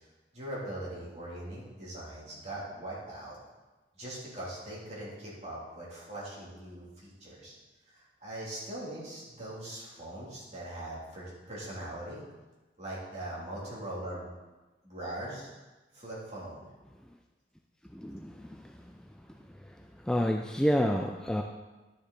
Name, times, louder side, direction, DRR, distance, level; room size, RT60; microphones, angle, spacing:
voice 1, 0.3-3.4 3.9-7.5 7.9-12.2 12.8-14.3 14.8-15.5 15.9-16.7, right 1 dB, 40° right, -6 dB, 3.1 m, -41 dB
voice 2, 17.9-18.5 20.1-21.4, equal, 5° left, 2 dB, 0.4 m, -28 dB
11.5 x 6.6 x 4.1 m, 1.2 s
head